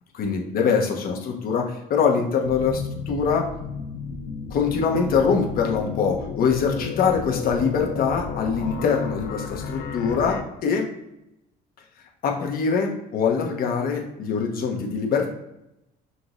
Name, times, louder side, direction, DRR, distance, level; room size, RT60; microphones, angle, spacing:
voice 1, 0.1-3.5 4.5-10.9 12.2-15.3, left 6 dB, 60° left, 1 dB, 1.1 m, -23 dB
sound 1, 2.4-10.4, left 5 dB, 75° left, 0.6 m, -33 dB
5.9 x 2.7 x 3.0 m, 0.85 s
cardioid pair, 110°, 17 cm